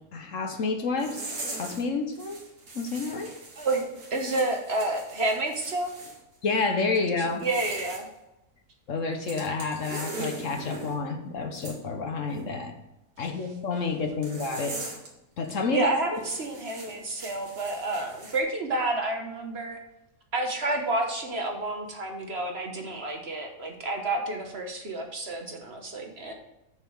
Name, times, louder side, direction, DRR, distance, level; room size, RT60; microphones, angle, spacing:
voice 1, 0.1-1.2 1.5-2.4 2.7-3.3 6.4-7.4 8.9-12.7 13.2-14.8 15.4-15.9, left 4 dB, 60° left, 4 dB, 1.3 m, -29 dB
sound 1, 1.0-1.8 2.1-6.2 7.3-8.0 9.2-11.0 11.5-11.8 14.2-15.1 15.4-15.6 16.2-18.4, right 2 dB, 85° right, 2.4 m, -40 dB
voice 2, 3.6-5.9 7.0-7.1 7.4-8.1 15.7-19.8 20.3-26.3, right 2 dB, 45° right, 2 dB, 1.3 m, -29 dB
6.9 x 6.8 x 5.5 m, 0.89 s
omnidirectional pair, 1.6 m